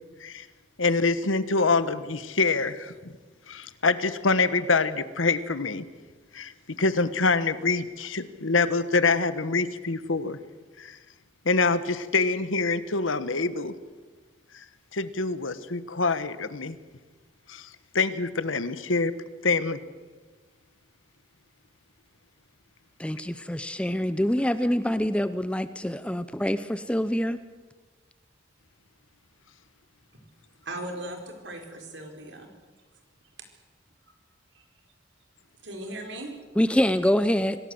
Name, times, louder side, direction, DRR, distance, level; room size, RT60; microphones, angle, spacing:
voice 1, 0.8-2.9 3.5-5.8 6.3-6.5 6.8-10.4 10.8-11.0 11.4-13.7 14.5-14.6 14.9-16.8 17.5-17.7 17.9-19.1 19.4-19.8, left 3 dB, 85° left, 13 dB, 1.3 m, -25 dB
voice 2, 23.0-27.4 36.6-37.6, equal, 5° left, 13 dB, 0.6 m, -25 dB
voice 3, 30.6-32.5 34.5-34.6 35.6-36.3, right 1 dB, 65° right, 4 dB, 4.7 m, -38 dB
26.5 x 17.5 x 7.9 m, 1.3 s
head